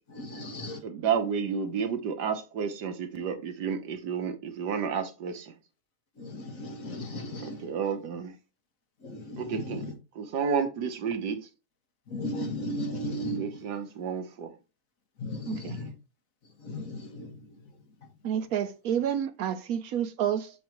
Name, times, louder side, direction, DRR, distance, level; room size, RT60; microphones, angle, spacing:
voice 1, 0.2-0.8 6.2-7.6 9.0-9.4 12.1-13.5 15.2-15.9 16.6-17.3, equal, 55° left, 1.8 m, -35 dB
voice 2, 0.8-5.5 7.4-8.3 9.4-11.5 13.4-14.5, right 6 dB, 85° right, 1.6 m, -31 dB
voice 3, 15.5-15.8 18.2-20.5, right 9 dB, 70° right, 1.0 m, -29 dB
7.3 x 4.8 x 3.0 m
omnidirectional pair, 1.7 m